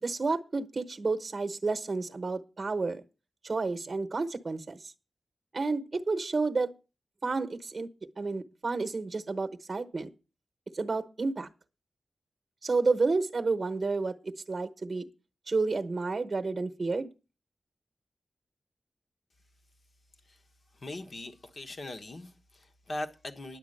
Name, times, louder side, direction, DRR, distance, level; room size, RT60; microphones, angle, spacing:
voice 1, 0.0-3.0 3.4-4.9 5.5-6.7 7.2-7.9 8.2-10.1 10.7-11.5 12.6-15.1 15.5-17.1, right 3 dB, 35° right, 1.0 m, -30 dB
voice 2, 20.7-23.6, left 2 dB, 45° left, 1.2 m, -40 dB
10.5 x 8.0 x 6.5 m
wide cardioid pair, 130°, 0 cm